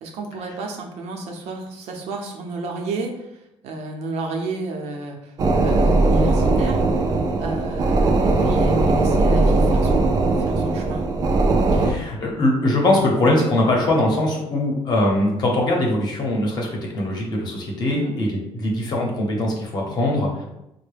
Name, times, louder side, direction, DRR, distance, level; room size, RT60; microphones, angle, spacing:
voice 1, 0.0-11.0 17.9-18.2, right 3 dB, 80° right, 2 dB, 0.7 m, -32 dB
sound 1, 5.4-11.9, right 2 dB, 35° right, 0.4 m, -19 dB
voice 2, 11.7-20.4, left 1 dB, 40° left, -1 dB, 0.8 m, -21 dB
4.4 x 2.1 x 3.3 m, 0.87 s
cardioid pair, 170°, 11 cm